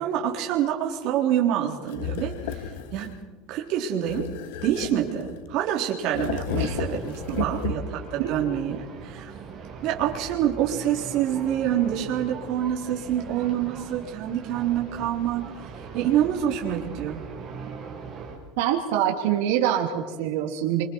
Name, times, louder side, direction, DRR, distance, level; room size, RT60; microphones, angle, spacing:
voice 1, 0.0-3.1 3.5-4.3 4.6-8.8 9.0-9.3 9.8-15.5 15.9-17.2, right 10 dB, 45° right, -1 dB, 3.7 m, -26 dB
sound 1, 1.9-3.2 4.0-5.6 6.1-8.0, left 9 dB, 90° left, 1.5 m, -33 dB
sound 2, 6.5-18.4, right 5 dB, 20° right, 5.2 m, -40 dB
voice 2, 18.6-20.8, right 11 dB, 80° right, 2 dB, 3.0 m, -25 dB
29.0 x 26.0 x 4.7 m, 1.3 s
cardioid pair, 175°, 0 cm